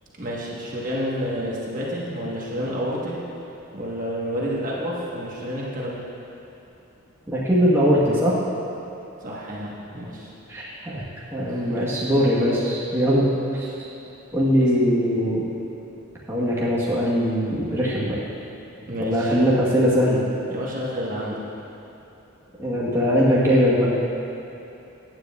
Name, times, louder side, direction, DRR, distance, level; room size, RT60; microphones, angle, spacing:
voice 1, 0.2-3.2 3.7-6.0 9.2-10.3 11.5-11.9 14.6-14.7 18.9-19.3 20.5-21.4, equal, 40° right, -5 dB, 1.2 m, -29 dB
voice 2, 7.3-8.3 10.5-11.0 11.3-13.3 13.5-13.7 14.3-15.5 16.3-18.2 19.0-20.2 22.6-23.9, equal, 10° right, -8 dB, 1.2 m, -21 dB
14.5 x 9.1 x 2.4 m, 2.9 s
head